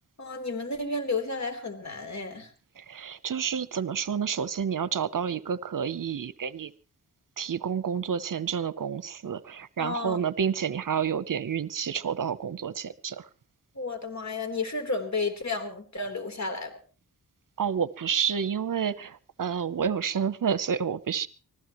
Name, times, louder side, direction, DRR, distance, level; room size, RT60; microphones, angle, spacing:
voice 1, 0.2-2.5 9.8-10.2 13.8-16.7, left 3 dB, 45° left, 3.6 m, -32 dB
voice 2, 2.8-6.7 7.4-13.3 17.6-21.3, right 7 dB, 55° right, 0.8 m, -29 dB
24.5 x 15.5 x 3.1 m
cardioid pair, 50°, 39 cm